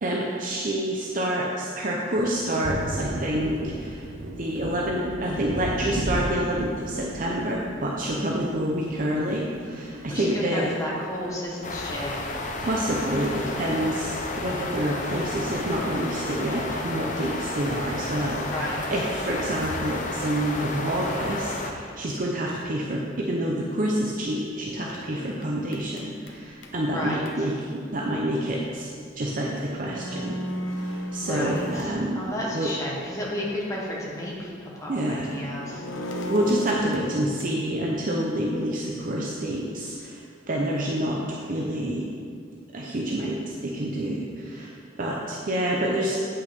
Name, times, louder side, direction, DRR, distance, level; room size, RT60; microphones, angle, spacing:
voice 1, 0.0-4.0 4.4-10.7 12.6-28.9 29.2-30.4 30.7-32.2 32.5-32.7 34.9-35.4 36.1-40.2 40.5-42.0 42.7-44.7 45.0-46.2, right 1 dB, 45° right, -2 dB, 0.7 m, -28 dB
Thunder, 2.2-11.9 12.3-13.4, right 1 dB, 85° right, 0.8 m, -35 dB
voice 2, 10.1-12.2 18.4-18.8 26.9-27.2 31.2-35.8, left 1 dB, 15° left, -5 dB, 1.6 m, -32 dB
sound 1, 11.6-21.7, left 2 dB, 40° left, 0.7 m, -32 dB
sound 2, 24.2-27.3 29.2-29.3 29.6-32.9 33.3-33.4 35.2-37.6, equal, 85° left, 1.0 m, -37 dB
8.6 x 5.6 x 5.3 m, 2.3 s
head